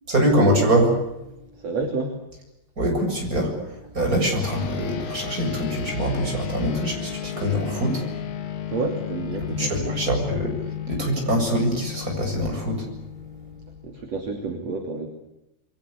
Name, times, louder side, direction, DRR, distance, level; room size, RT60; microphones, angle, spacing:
voice 1, 0.1-0.9 2.8-8.0 9.6-10.5 10.9-12.9, equal, 25° right, 2 dB, 8.1 m, -23 dB
voice 2, 1.6-2.2 8.7-10.1 13.8-15.1, right 3 dB, 50° right, 3 dB, 4.0 m, -30 dB
sound 1, 4.4-14.2, left 10 dB, 80° left, 4.0 m, -34 dB
29.0 x 23.0 x 8.5 m, 0.90 s
omnidirectional pair, 3.9 m